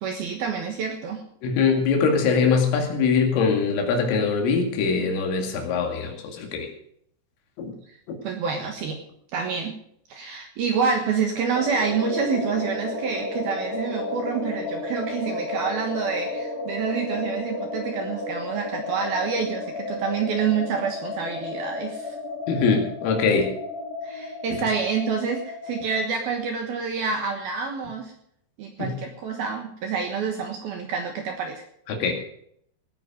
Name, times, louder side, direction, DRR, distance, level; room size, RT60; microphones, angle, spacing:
voice 1, 0.0-1.2 7.9-8.0 8.2-9.0 9.3-9.8 10.1-22.2 24.0-28.1 28.6-31.6, right 6 dB, 65° right, 4 dB, 2.5 m, -28 dB
voice 2, 1.4-6.7 7.6-7.7 8.1-8.2 22.5-23.5 28.8-29.0 31.9-32.1, left 5 dB, 75° left, 3 dB, 4.6 m, -22 dB
sound 1, 11.5-26.9, left 2 dB, 30° left, 1.9 m, -33 dB
18.0 x 9.5 x 5.1 m, 0.69 s
omnidirectional pair, 5.9 m